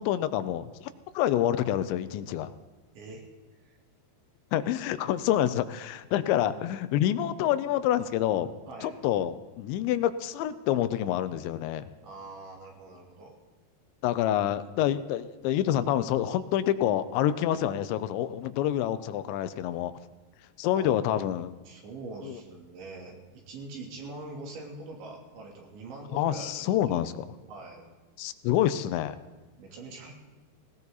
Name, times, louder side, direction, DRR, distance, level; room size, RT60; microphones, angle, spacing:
voice 1, 0.0-2.5 4.5-8.5 8.8-11.8 14.0-19.9 20.6-21.5 22.2-22.4 26.1-27.3 28.2-29.2, left 11 dB, 90° left, 12 dB, 3.1 m, -27 dB
voice 2, 3.0-3.3 3.7-3.8 8.7-8.9 12.0-13.3 20.8-20.9 21.7-27.0 27.5-27.9 29.6-30.1, right 2 dB, 85° right, -1 dB, 5.4 m, -43 dB
18.5 x 18.0 x 4.1 m, 1.3 s
omnidirectional pair, 5.1 m